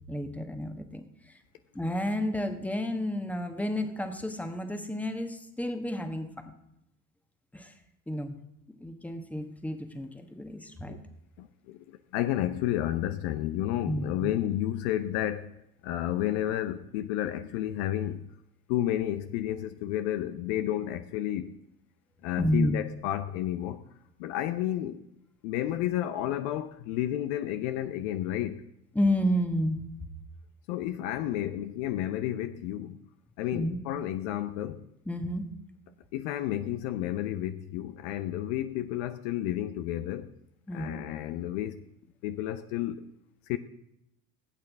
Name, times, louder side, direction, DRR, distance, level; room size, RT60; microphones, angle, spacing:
voice 1, 0.1-1.4 1.7-6.5 7.5-7.7 8.1-8.4 8.8-10.9 13.9-14.3 22.4-22.8 28.9-29.9 33.5-33.8 35.1-35.4 40.7-41.0, equal, 5° left, 1.3 m, -31 dB
voice 2, 11.4-15.5 15.8-18.2 18.7-21.6 22.2-23.8 24.2-25.0 25.4-28.6 30.7-33.0 33.4-34.9 36.1-40.3 40.7-41.8 42.2-43.0 43.5-43.6, left 12 dB, 55° left, 0.7 m, -31 dB
16.5 x 8.5 x 3.6 m
figure-of-eight pair, 65°, 43 cm